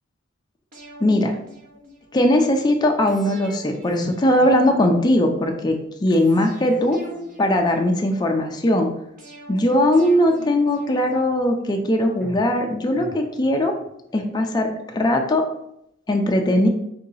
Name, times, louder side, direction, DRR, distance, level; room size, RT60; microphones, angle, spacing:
sound 1, 0.7-2.3 3.1-5.2 6.1-8.3 9.2-11.6 12.2-13.9 14.2-14.3, equal, 45° right, 1.2 m, -41 dB
voice 1, 1.0-1.3 2.1-7.0 7.4-8.9 9.5-13.7 14.1-15.4 16.1-16.7, left 1 dB, 20° left, 3 dB, 0.4 m, -19 dB
3.7 x 2.8 x 4.0 m, 0.79 s
head